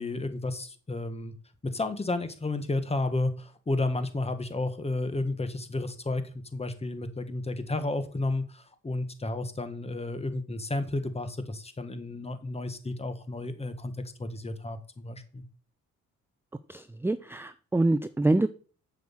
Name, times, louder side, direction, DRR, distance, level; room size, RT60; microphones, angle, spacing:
voice 1, 0.0-1.3 1.7-6.2 6.5-13.9 14.2-15.4, left 2 dB, 20° left, 1.6 m, -32 dB
voice 2, 16.7-18.5, right 2 dB, 10° right, 0.5 m, -26 dB
7.8 x 6.3 x 7.4 m
cardioid pair, 90°, 30 cm